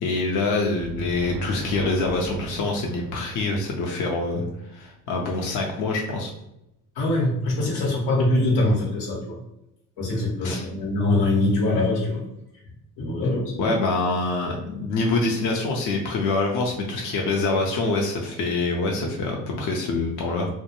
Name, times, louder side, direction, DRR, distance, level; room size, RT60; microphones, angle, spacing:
voice 1, 0.0-4.4 4.7-6.3 10.4-10.6 13.6-20.5, left 3 dB, 50° left, 0 dB, 0.6 m, -25 dB
sound 1, 0.8-4.5, right 1 dB, 55° right, 0.6 m, -35 dB
voice 2, 7.0-9.4 10.0-12.2 13.0-13.7, left 2 dB, 75° left, -3 dB, 1.0 m, -23 dB
2.2 x 2.1 x 2.9 m, 0.84 s
supercardioid pair, 65°, 40 cm